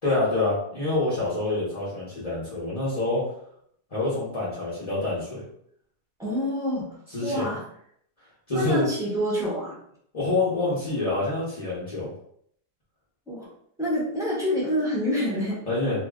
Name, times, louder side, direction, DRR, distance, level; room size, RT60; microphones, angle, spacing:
voice 1, 0.0-3.2 3.9-5.4 7.1-7.5 8.5-8.8 10.1-12.1 15.7-16.0, left 2 dB, 25° left, -10 dB, 0.9 m, -26 dB
voice 2, 6.2-6.9 7.2-7.6 8.5-9.8 13.3-13.5 13.8-15.6, equal, 5° right, -6 dB, 0.7 m, -27 dB
3.0 x 2.6 x 3.6 m, 0.68 s
omnidirectional pair, 1.9 m